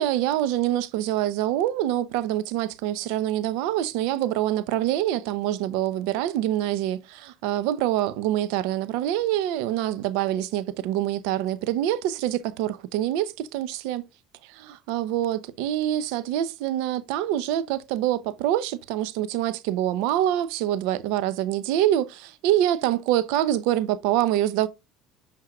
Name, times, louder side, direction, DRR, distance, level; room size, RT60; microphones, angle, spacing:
voice 1, 0.0-14.0 14.5-24.7, right 12 dB, 80° right, 0.8 m, -25 dB
11.0 x 4.6 x 2.3 m
supercardioid pair, 110°, 0 cm